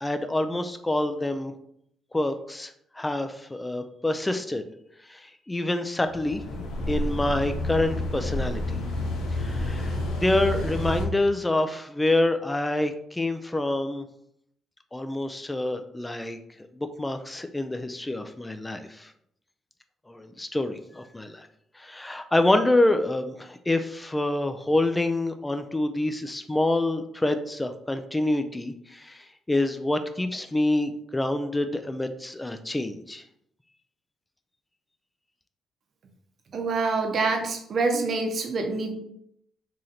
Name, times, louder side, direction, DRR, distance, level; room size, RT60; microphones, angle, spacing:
voice 1, 0.0-1.5 2.1-4.6 5.1-6.4 6.9-8.8 9.4-14.1 14.9-16.4 16.7-19.1 20.1-21.5 21.8-33.2, left 1 dB, 15° left, 8 dB, 0.3 m, -27 dB
sound 1, 6.0-11.1, left 1 dB, 90° left, 0.8 m, -29 dB
voice 2, 36.5-38.9, right 3 dB, 55° right, 4 dB, 0.8 m, -26 dB
3.1 x 2.8 x 3.8 m, 0.71 s
cardioid pair, 90°, 0 cm